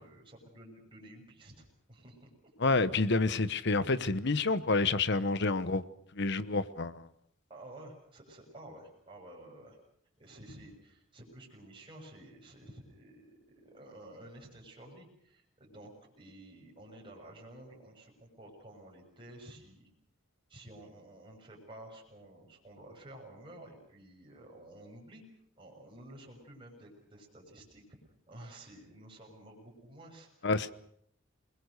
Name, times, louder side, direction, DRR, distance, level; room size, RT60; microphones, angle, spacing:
voice 1, 0.0-2.3 7.5-9.8 10.2-19.9 20.5-25.2 25.6-27.8 28.3-30.7, right 1 dB, 25° right, 6.8 m, -52 dB
voice 2, 2.6-5.8 6.2-7.1 30.4-30.7, left 3 dB, 55° left, 1.0 m, -28 dB
28.0 x 21.0 x 6.6 m
head